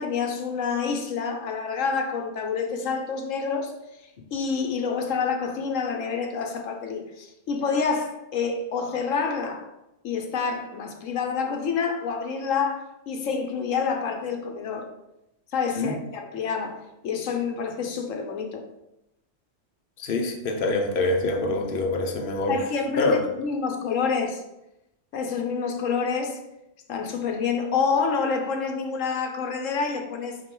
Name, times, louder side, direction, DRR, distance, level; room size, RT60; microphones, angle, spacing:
voice 1, 0.0-3.7 4.3-9.7 10.0-14.9 15.5-18.6 22.5-24.4 25.1-26.4 26.9-30.4, left 5 dB, 80° left, 4 dB, 1.2 m, -28 dB
voice 2, 20.0-22.6 23.0-23.2, left 2 dB, 50° left, 2 dB, 0.9 m, -25 dB
5.7 x 5.1 x 3.8 m, 0.89 s
omnidirectional pair, 1.3 m